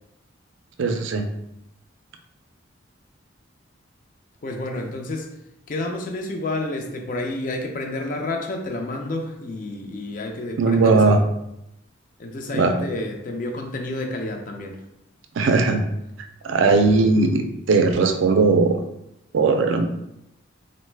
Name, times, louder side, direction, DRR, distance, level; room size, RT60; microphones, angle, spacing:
voice 1, 0.8-1.3 10.6-11.2 12.5-12.7 15.4-15.8 16.4-18.7 19.3-19.8, right 3 dB, 70° right, 5 dB, 0.4 m, -18 dB
voice 2, 4.4-5.3 5.7-11.2 12.2-14.8, left 2 dB, 40° left, 3 dB, 0.4 m, -30 dB
3.1 x 2.0 x 3.2 m, 0.83 s
head